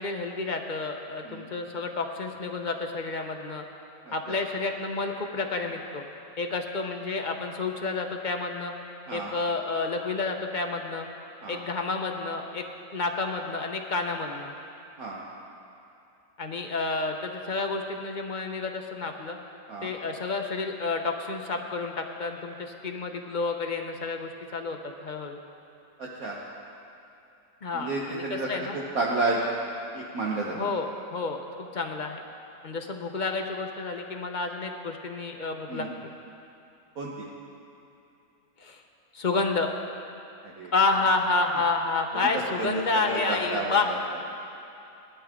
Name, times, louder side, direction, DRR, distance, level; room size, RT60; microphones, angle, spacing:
voice 1, 0.0-3.6 4.1-6.0 6.4-8.7 9.1-11.1 11.5-12.6 12.9-14.5 16.4-19.4 19.8-25.4 27.6-28.8 30.5-32.2 32.6-35.9 38.6-38.8 39.1-39.7 40.7-43.9, left 3 dB, 40° left, 3 dB, 0.7 m, -30 dB
voice 2, 4.0-4.4 9.1-9.3 11.4-11.6 15.0-15.2 19.7-19.9 26.0-26.4 27.7-29.4 29.9-30.6 35.7-35.9 36.9-37.2 40.4-40.7 42.1-42.3 42.6-44.0, right 2 dB, 60° right, -4 dB, 1.5 m, -31 dB
19.0 x 12.0 x 3.7 m, 2.7 s
omnidirectional pair, 1.8 m